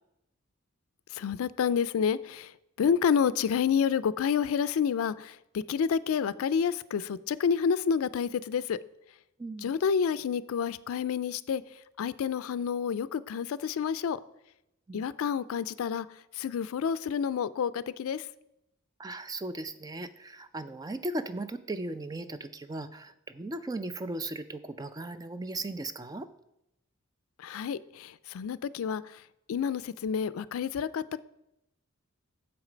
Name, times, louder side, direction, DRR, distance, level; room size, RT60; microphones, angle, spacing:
voice 1, 1.1-2.5 2.8-5.4 5.7-8.8 9.6-11.6 12.0-14.2 14.9-16.1 16.4-18.3 27.4-29.0 29.5-31.2, left 7 dB, 80° left, 0.4 m, -29 dB
voice 2, 9.4-9.7 14.9-15.0 19.0-26.3, right 2 dB, 20° right, 0.3 m, -37 dB
7.1 x 6.4 x 5.0 m
head